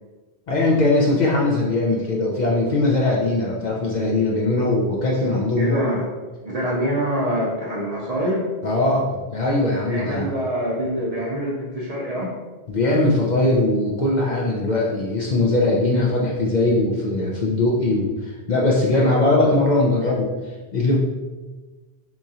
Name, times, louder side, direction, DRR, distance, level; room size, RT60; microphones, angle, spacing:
voice 1, 0.5-5.9 8.6-10.3 12.7-20.3 20.7-21.0, left 2 dB, 55° left, -4 dB, 0.5 m, -20 dB
voice 2, 5.6-6.1 6.4-8.5 9.9-12.3 18.9-19.5, equal, 45° right, -4 dB, 0.6 m, -25 dB
3.6 x 2.9 x 2.7 m, 1.3 s
omnidirectional pair, 1.1 m